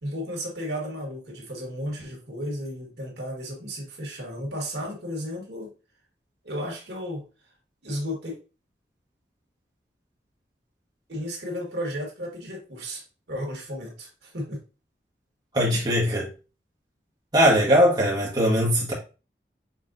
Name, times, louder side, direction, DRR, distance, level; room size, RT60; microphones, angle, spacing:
voice 1, 0.0-5.7 6.4-7.2 7.8-8.3 11.1-13.0 13.3-14.6, equal, 75° right, 1.5 m, -33 dB
voice 2, 15.5-16.3 17.3-18.9, equal, 25° right, 1.3 m, -20 dB
5.5 x 3.5 x 2.6 m
head